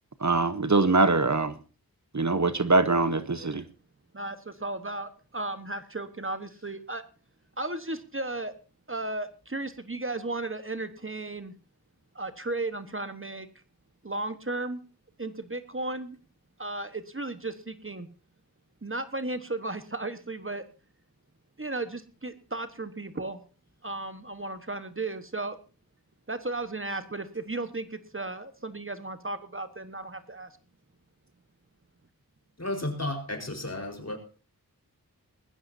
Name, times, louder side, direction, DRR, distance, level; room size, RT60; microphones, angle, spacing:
voice 1, 0.2-1.6 2.1-3.6, right 3 dB, 50° right, 1.0 m, -23 dB
voice 2, 4.1-7.0 7.6-8.5 8.9-11.5 12.1-13.5 14.0-14.8 15.2-16.2 16.6-18.1 18.8-20.6 21.6-23.4 23.8-25.6 26.3-30.5, right 2 dB, 35° right, 1.3 m, -35 dB
voice 3, 32.6-34.2, left 1 dB, 45° left, 4.4 m, -33 dB
20.0 x 15.5 x 2.7 m
wide cardioid pair, 50°, 36 cm